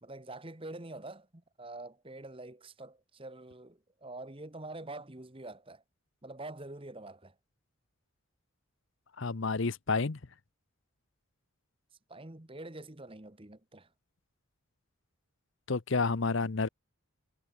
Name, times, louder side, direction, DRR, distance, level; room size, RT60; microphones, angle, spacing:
voice 1, 0.0-5.8 6.2-7.3 12.1-13.9, right 2 dB, 25° right, 1.3 m, -46 dB
voice 2, 9.2-10.2 15.7-16.7, left 4 dB, 55° left, 0.8 m, -30 dB
head